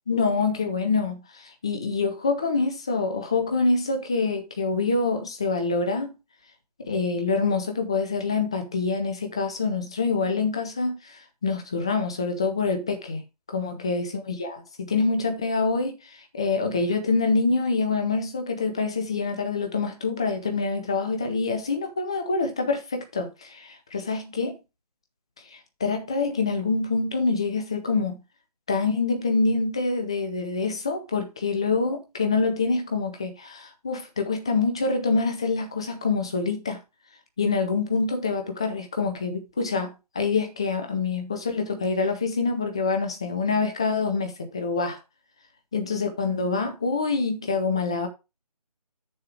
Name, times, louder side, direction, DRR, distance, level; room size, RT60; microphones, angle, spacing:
voice 1, 0.1-6.1 6.8-13.2 13.5-24.6 25.8-28.2 28.7-36.8 37.4-45.0 45.7-48.1, left 4 dB, 10° left, 0.4 m, -26 dB
6.9 x 6.5 x 4.5 m
figure-of-eight pair, 155°, 20 cm